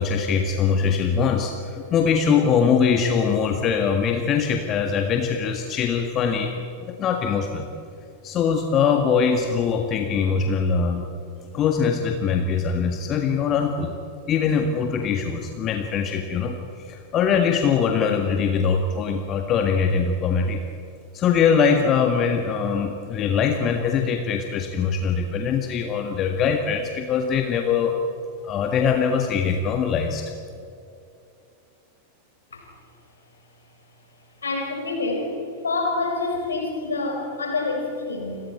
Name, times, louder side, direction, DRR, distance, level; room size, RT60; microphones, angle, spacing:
voice 1, 0.0-6.5 6.9-7.6 8.2-11.0 11.5-13.9 14.3-16.6 16.9-20.6 21.1-28.0 28.4-30.2, left 6 dB, 30° left, 4 dB, 1.7 m, -22 dB
voice 2, 34.4-35.3 35.6-38.4, left 3 dB, 70° left, 1 dB, 5.5 m, -27 dB
29.5 x 23.0 x 4.4 m, 2.6 s
figure-of-eight pair, 90°, 0 cm